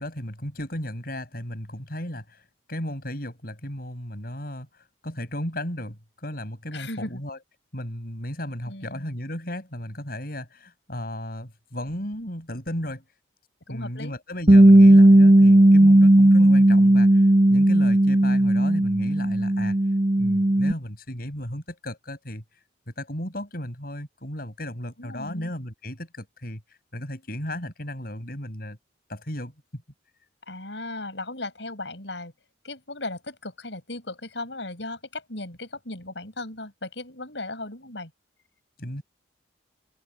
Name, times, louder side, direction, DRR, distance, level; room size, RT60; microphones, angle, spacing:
voice 1, 0.0-7.4 7.7-13.0 13.7-19.8 20.2-28.8 29.1-29.8 38.8-39.0, left 1 dB, 50° left, 7.3 m, -35 dB
voice 2, 6.7-7.2 8.6-9.1 13.7-14.2 25.0-25.5 30.5-32.3 32.6-38.1, left 2 dB, 70° left, 6.7 m, -36 dB
Bass guitar, 14.5-20.7, right 1 dB, 35° right, 1.4 m, -15 dB
head